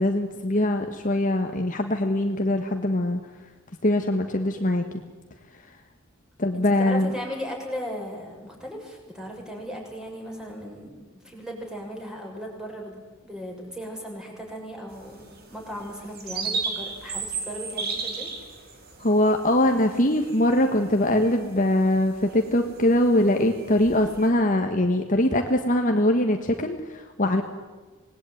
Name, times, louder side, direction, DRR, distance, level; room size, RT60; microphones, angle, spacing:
voice 1, 0.0-3.2 3.8-4.8 6.4-7.1 19.0-27.4, left 1 dB, 40° left, 4 dB, 1.8 m, -22 dB
voice 2, 6.5-10.9 11.2-15.2 15.5-18.3, equal, 5° right, 0 dB, 6.8 m, -37 dB
sound 1, 14.9-24.3, right 4 dB, 50° right, 4.7 m, -36 dB
26.5 x 20.0 x 9.4 m, 1.3 s
head